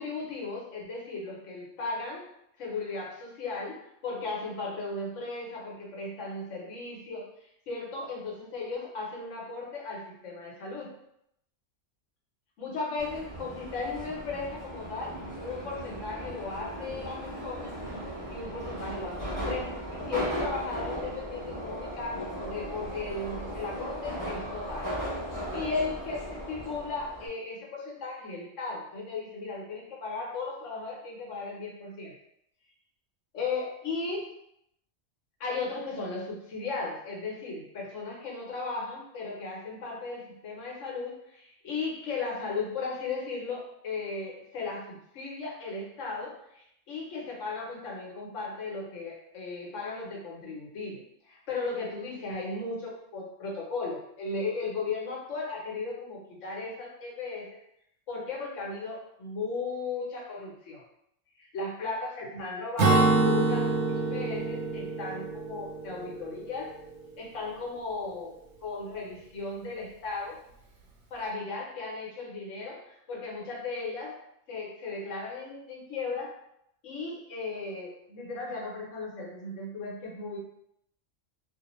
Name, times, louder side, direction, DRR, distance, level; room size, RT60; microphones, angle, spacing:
voice 1, 0.0-2.3 2.6-7.3 7.7-10.9 12.6-17.7 18.3-24.9 25.5-32.1 33.3-34.2 35.4-57.6 58.1-60.8 61.4-63.7 64.1-66.7 67.2-68.3 68.6-70.4 71.1-74.1 74.5-76.3 76.8-80.4, left 3 dB, 80° left, -3 dB, 1.1 m, -36 dB
Subway metro underground, 13.0-27.3, equal, 15° left, 0.9 m, -37 dB
Acoustic guitar / Strum, 62.8-66.4, right 3 dB, 85° right, 1.0 m, -26 dB
2.4 x 2.2 x 2.9 m, 0.75 s
omnidirectional pair, 1.3 m